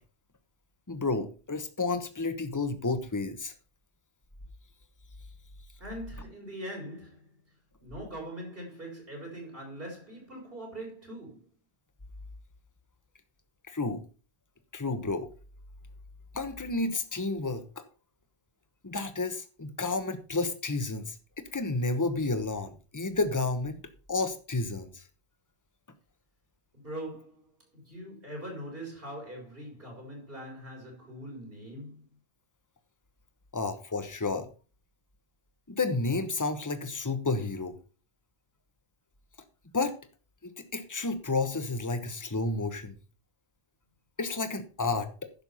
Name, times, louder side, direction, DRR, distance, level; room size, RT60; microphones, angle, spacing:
voice 1, 0.9-3.5 13.7-14.0 14.7-15.3 16.3-17.8 18.8-23.8 24.1-25.0 33.5-34.5 35.7-37.8 39.7-39.9 40.4-42.9 44.2-45.3, left 3 dB, 20° left, 1.1 m, -31 dB
voice 2, 5.8-7.3 7.8-11.4 26.7-32.0, right 1 dB, 65° right, 4.6 m, -42 dB
11.0 x 6.8 x 5.6 m
omnidirectional pair, 1.0 m